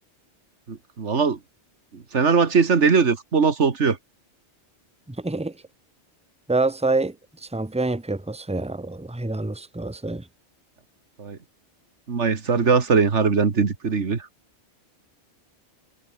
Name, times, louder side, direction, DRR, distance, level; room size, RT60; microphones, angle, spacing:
voice 1, 0.7-1.4 1.9-4.0 11.2-11.4 12.1-14.3, right 5 dB, 80° right, 2.1 m, -20 dB
voice 2, 6.5-7.1 7.5-10.2, right 2 dB, 5° right, 1.2 m, -26 dB
omnidirectional pair, 1.2 m